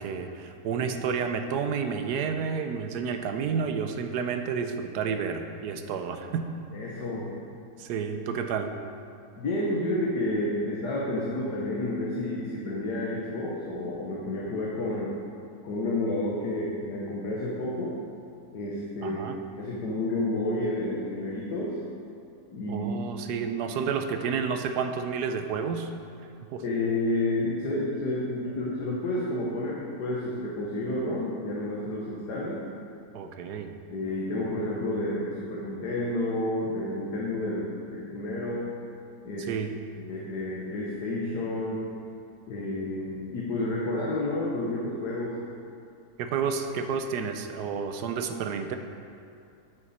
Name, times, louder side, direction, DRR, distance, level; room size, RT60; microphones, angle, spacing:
voice 1, 0.0-6.5 7.8-8.7 19.0-19.4 22.7-25.9 26.5-26.6 33.1-33.7 39.4-39.7 46.2-48.8, right 6 dB, 80° right, 7 dB, 1.2 m, -30 dB
voice 2, 6.7-7.3 9.4-15.1 15.6-18.0 18.5-19.2 19.6-21.8 22.5-22.9 26.6-32.7 33.9-38.7 39.3-39.5 40.0-41.8 42.5-45.4, left 1 dB, 80° left, -5 dB, 1.8 m, -30 dB
9.0 x 8.9 x 4.2 m, 2.5 s
omnidirectional pair, 1.7 m